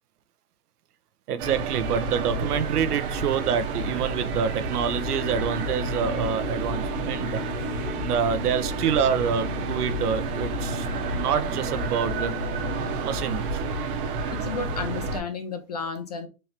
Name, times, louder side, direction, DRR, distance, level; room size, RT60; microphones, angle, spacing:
voice 1, 1.3-7.4 8.0-10.9 11.1-12.3 13.0-13.6, right 7 dB, 90° right, 0.9 m, -27 dB
sound 1, 1.4-15.2, right 3 dB, 35° right, 0.9 m, -30 dB
sound 2, 4.9-13.6, left 8 dB, 80° left, 1.1 m, -39 dB
voice 2, 14.3-16.3, left 5 dB, 30° left, 0.3 m, -32 dB
4.4 x 3.2 x 2.9 m
hypercardioid pair, 155°, 44 cm